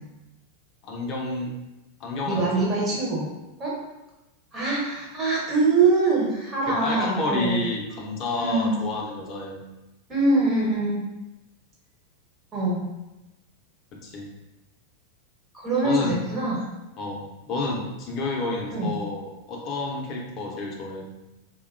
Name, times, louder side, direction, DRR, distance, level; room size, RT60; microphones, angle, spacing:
voice 1, 0.8-1.5 2.0-2.5 2.8-3.0 6.7-9.6 13.9-14.3 15.8-16.1 17.0-21.1, left 2 dB, 40° left, -1 dB, 0.6 m, -30 dB
voice 2, 2.3-3.3 3.6-3.7 4.5-7.6 8.4-8.8 10.1-11.0 12.5-12.8 15.5-16.7 18.7-18.9, right 3 dB, 25° right, -5 dB, 1.1 m, -23 dB
2.8 x 2.1 x 2.4 m, 1.0 s
hypercardioid pair, 110°, 0 cm